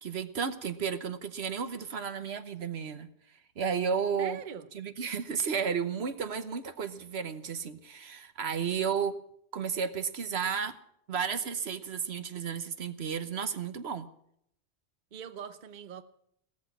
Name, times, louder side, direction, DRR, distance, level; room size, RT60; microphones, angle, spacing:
voice 1, 0.0-3.1 3.6-4.4 4.7-9.2 9.5-10.7 11.1-14.1, right 6 dB, 70° right, 1.3 m, -33 dB
voice 2, 4.2-4.7 15.1-16.0, right 8 dB, 50° right, 0.9 m, -42 dB
16.5 x 14.0 x 6.0 m
omnidirectional pair, 1.1 m